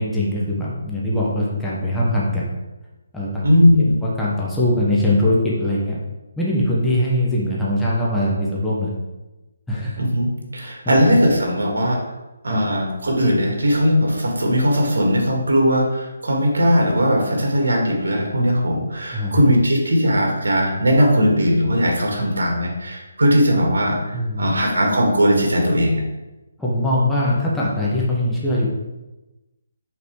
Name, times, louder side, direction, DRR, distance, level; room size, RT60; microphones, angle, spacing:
voice 1, 0.0-2.5 3.1-3.5 4.0-6.0 6.4-8.9 9.7-10.0 10.6-11.0 12.5-12.6 19.1-19.4 24.1-24.5 26.6-28.7, left 1 dB, 5° left, -7 dB, 1.1 m, -21 dB
voice 2, 3.4-3.9 10.0-12.0 12.4-26.0, equal, 85° right, 0 dB, 2.0 m, -18 dB
5.8 x 4.1 x 4.7 m, 1.0 s
hypercardioid pair, 165°, 0 cm